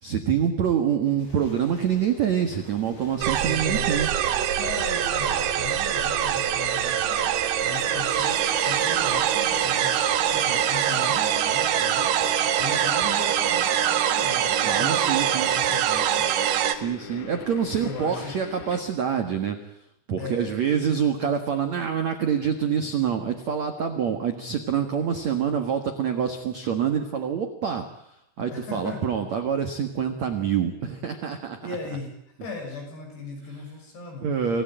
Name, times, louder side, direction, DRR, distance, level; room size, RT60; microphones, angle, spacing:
voice 1, 0.0-4.1 14.6-15.5 16.7-19.6 20.1-31.6 34.2-34.6, right 8 dB, 60° right, 6 dB, 1.8 m, -26 dB
sound 1, 1.2-7.1, left 1 dB, 40° left, 9.1 m, -47 dB
sound 2, 3.2-16.7, right 10 dB, 80° right, 1.9 m, -24 dB
voice 2, 3.4-3.9 4.4-16.9 17.6-18.5 20.2-20.6 28.5-29.1 31.6-32.1 32.4-34.3, left 3 dB, 60° left, 2 dB, 8.7 m, -38 dB
sound 3, 6.9-18.8, left 7 dB, 75° left, 4.9 m, -41 dB
27.0 x 16.5 x 9.0 m, 0.74 s
omnidirectional pair, 5.7 m